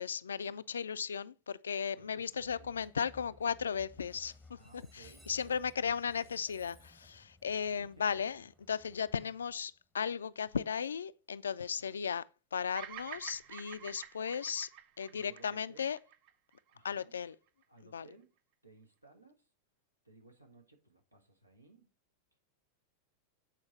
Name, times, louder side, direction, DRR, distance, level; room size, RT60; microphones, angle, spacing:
voice 1, 0.0-12.2 12.5-14.7 15.0-16.0 16.8-17.3 17.9-18.1, left 7 dB, 70° left, 0.3 m, -36 dB
voice 2, 1.9-2.7 4.5-6.0 7.6-8.2 11.6-12.0 15.1-15.9 16.7-17.2 17.7-18.3 18.6-19.5 20.0-21.9, right 3 dB, 85° right, 1.4 m, -60 dB
Train, 2.3-10.2, left 2 dB, 10° right, 0.9 m, -61 dB
Bird vocalization bird call bird song, 12.7-17.0, right 11 dB, 40° right, 0.5 m, -49 dB
7.5 x 4.5 x 4.1 m
figure-of-eight pair, 90°, 0 cm